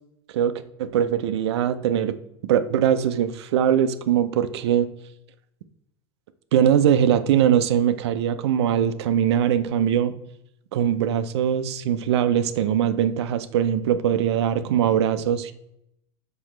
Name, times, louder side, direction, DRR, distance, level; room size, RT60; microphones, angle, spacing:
voice 1, 0.3-2.1 2.5-4.9 6.5-10.1 10.7-15.5, right 9 dB, 80° right, 11 dB, 0.5 m, -21 dB
5.9 x 5.4 x 3.2 m, 0.79 s
supercardioid pair, 125°, 14 cm